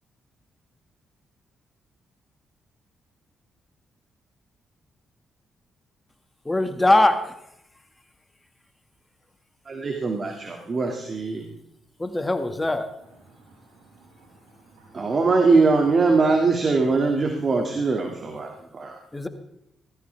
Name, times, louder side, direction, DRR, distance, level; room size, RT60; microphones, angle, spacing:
voice 1, 6.5-7.3 12.0-12.9 19.1-19.3, left 2 dB, 20° left, 8 dB, 1.8 m, -21 dB
voice 2, 9.7-11.4 14.9-19.0, right 4 dB, 45° right, 3 dB, 2.2 m, -22 dB
voice 3, 13.3-15.2 18.4-18.5, right 2 dB, 85° right, -5 dB, 6.8 m, -55 dB
18.0 x 14.0 x 3.5 m, 0.80 s
supercardioid pair, 60°, 0 cm